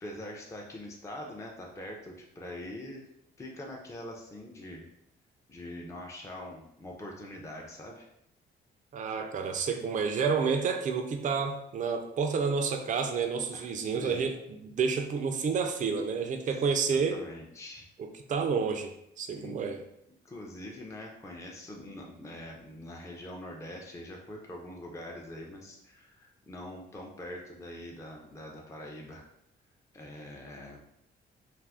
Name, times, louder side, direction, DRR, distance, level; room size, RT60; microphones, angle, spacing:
voice 1, 0.0-3.0 3.4-4.9 5.5-8.1 13.5-14.3 16.5-17.9 19.3-19.6 20.2-29.3 29.9-30.8, left 1 dB, 15° left, -1 dB, 0.5 m, -44 dB
voice 2, 8.9-17.2 18.0-18.9 19.2-19.8, right 5 dB, 40° right, 5 dB, 0.4 m, -30 dB
2.5 x 2.5 x 3.4 m, 0.78 s
cardioid pair, 90°, 20 cm